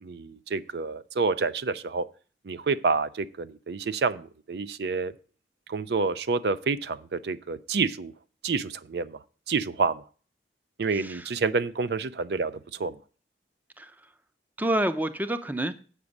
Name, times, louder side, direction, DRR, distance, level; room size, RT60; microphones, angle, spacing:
voice 1, 0.0-2.0 2.4-5.1 5.7-8.1 8.4-9.2 9.5-10.0 10.8-12.9, right 4 dB, 65° right, 14 dB, 0.5 m, -28 dB
voice 2, 10.9-11.2 13.8-13.9 14.6-15.7, right 1 dB, 10° right, 11 dB, 0.5 m, -28 dB
8.3 x 6.0 x 6.4 m, 0.39 s
head